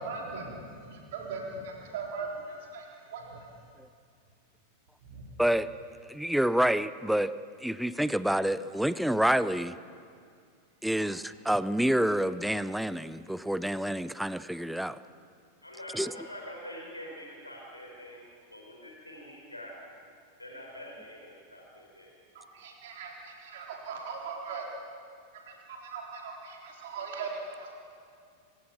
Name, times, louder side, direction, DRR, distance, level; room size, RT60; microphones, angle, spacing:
voice 1, 0.0-2.9 3.1-3.5 5.0-5.2 22.3-24.7 25.5-27.7, right 4 dB, 55° right, -1 dB, 4.1 m, -39 dB
voice 2, 6.1-7.3 7.6-9.8 10.8-15.0 15.9-16.1, right 1 dB, ahead, 16 dB, 0.6 m, -28 dB
voice 3, 15.6-18.2 18.5-19.8 20.4-22.1, equal, 85° left, 0 dB, 4.4 m, -45 dB
26.0 x 17.0 x 6.0 m, 2.3 s
figure-of-eight pair, 90°, 0 cm